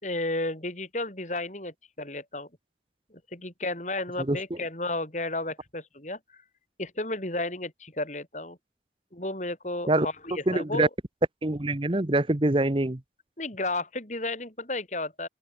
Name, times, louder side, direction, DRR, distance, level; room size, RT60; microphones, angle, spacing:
voice 1, 0.0-2.5 3.1-6.2 6.8-8.6 9.1-10.9 13.4-15.3, left 2 dB, 40° left, 6.1 m, -33 dB
voice 2, 10.5-10.9 11.4-13.0, right 2 dB, 30° right, 1.0 m, -24 dB
open air
head